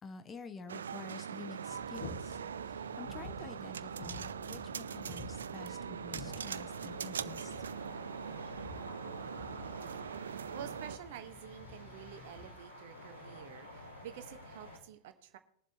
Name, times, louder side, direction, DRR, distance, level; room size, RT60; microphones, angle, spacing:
voice 1, 0.0-2.4 2.7-7.6, left 4 dB, 20° left, 10 dB, 0.9 m, -49 dB
sound 1, 0.7-11.0, right 7 dB, 70° right, 0.3 m, -42 dB
sound 2, 1.7-12.5, left 3 dB, 50° left, 4.0 m, -51 dB
sound 3, 6.2-14.8, left 1 dB, 85° left, 3.7 m, -51 dB
voice 2, 10.2-15.4, right 10 dB, 50° right, 8 dB, 1.3 m, -49 dB
22.0 x 7.4 x 3.0 m, 0.68 s
figure-of-eight pair, 90°, 0 cm